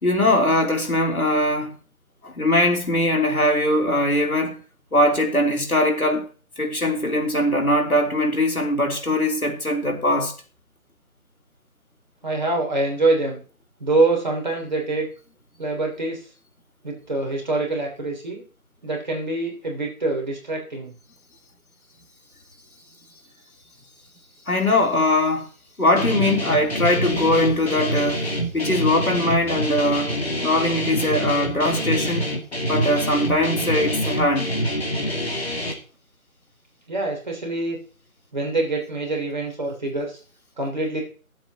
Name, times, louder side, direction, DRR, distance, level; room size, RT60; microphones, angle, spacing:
voice 1, 0.0-1.8 2.2-4.6 4.9-6.3 6.6-10.3 24.5-25.5 25.8-28.3 28.5-30.1 30.4-32.4 32.7-34.5, left 1 dB, 80° left, 3.5 m, -21 dB
voice 2, 12.2-13.4 13.8-15.1 15.6-16.2 16.8-18.4 18.8-20.9 36.9-37.8 38.3-40.2 40.6-41.0, right 2 dB, 30° right, 3.1 m, -25 dB
Guitar, 26.0-35.7, equal, 45° left, 2.4 m, -26 dB
21.5 x 7.9 x 2.9 m
figure-of-eight pair, 170°, 43 cm